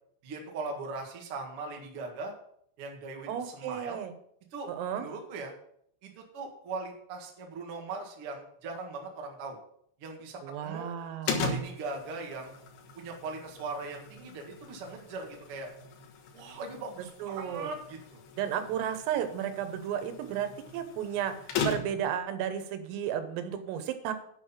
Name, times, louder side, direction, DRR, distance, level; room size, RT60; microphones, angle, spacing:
voice 1, 0.2-2.3 2.8-4.0 4.5-4.7 5.0-5.5 6.0-9.6 10.0-10.9 11.2-12.5 12.9-15.7 16.3-18.2, right 3 dB, 70° right, 0 dB, 1.3 m, -39 dB
voice 2, 3.3-4.1 4.7-5.1 10.4-11.3 17.2-17.7 18.4-21.4 21.7-24.1, right 9 dB, 90° right, 9 dB, 3.7 m, -33 dB
sound 1, 11.3-22.2, left 4 dB, 65° left, 2.8 m, -39 dB
9.1 x 5.7 x 7.2 m, 0.68 s
omnidirectional pair, 5.8 m